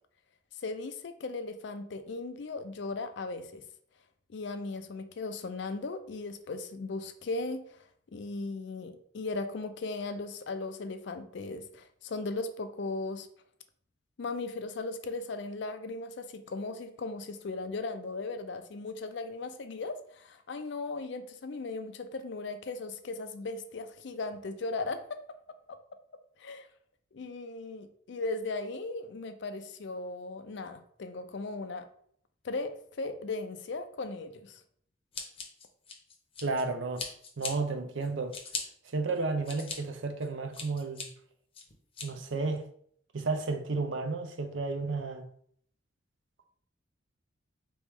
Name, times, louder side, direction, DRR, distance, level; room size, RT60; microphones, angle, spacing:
voice 1, 0.5-3.6 4.3-7.8 8.1-13.3 14.2-25.2 25.7-25.8 26.4-26.7 27.1-31.9 32.4-34.6, left 3 dB, 65° left, 0.4 m, -37 dB
Scissors, 35.1-36.6 37.0-37.5 38.0-38.6 39.2-39.8 40.2-41.0 41.5-42.1, left 5 dB, 30° left, 0.7 m, -39 dB
voice 2, 36.4-37.0 37.4-38.3 38.9-41.1 42.0-42.6 43.1-45.2, right 3 dB, 75° right, 0.6 m, -32 dB
4.1 x 3.1 x 3.5 m
head